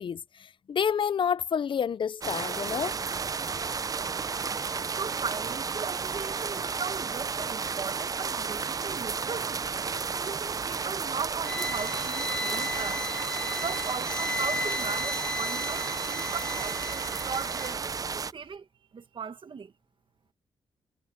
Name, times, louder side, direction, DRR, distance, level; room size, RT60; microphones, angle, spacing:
voice 1, 0.0-3.0, left 7 dB, 50° left, 0.5 m, -29 dB
sound 1, 2.2-18.3, right 5 dB, 35° right, 0.5 m, -32 dB
voice 2, 5.0-9.6 10.2-13.0 13.6-17.8 18.1-18.7 18.9-19.7, right 6 dB, 50° right, 1.8 m, -38 dB
sound 2, 11.4-17.8, left 1 dB, 10° left, 1.2 m, -35 dB
cardioid pair, 85°, 11 cm